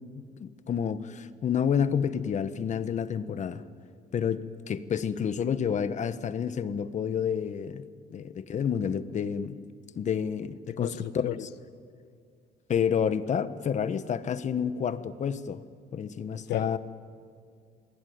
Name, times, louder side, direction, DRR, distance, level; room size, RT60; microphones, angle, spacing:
voice 1, 0.2-3.6 4.1-7.8 8.1-9.6 9.9-11.3 12.7-15.6 15.9-16.8, left 7 dB, 45° left, 12 dB, 1.3 m, -29 dB
voice 2, 10.7-11.5 16.5-16.8, left 14 dB, 85° left, 14 dB, 0.9 m, -33 dB
28.5 x 22.0 x 9.6 m, 2.2 s
cardioid pair, 110°, 17 cm